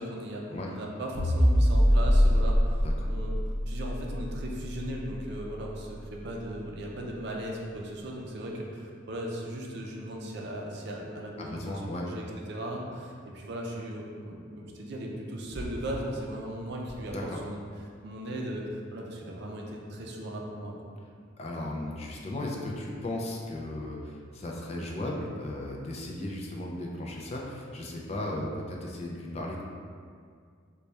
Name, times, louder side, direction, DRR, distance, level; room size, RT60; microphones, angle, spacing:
voice 1, 0.0-3.4 3.7-17.6 18.0-20.9, right 1 dB, 55° right, -1 dB, 0.5 m, -37 dB
sound 1, 1.2-5.6, equal, 65° left, 1.0 m, -24 dB
voice 2, 11.4-12.1 17.1-17.4 21.4-29.6, left 1 dB, 30° left, -2 dB, 0.4 m, -36 dB
sound 2, 15.5-16.2 16.8-17.7, equal, 5° right, 1.2 m, -42 dB
4.0 x 2.2 x 3.2 m, 2.1 s
head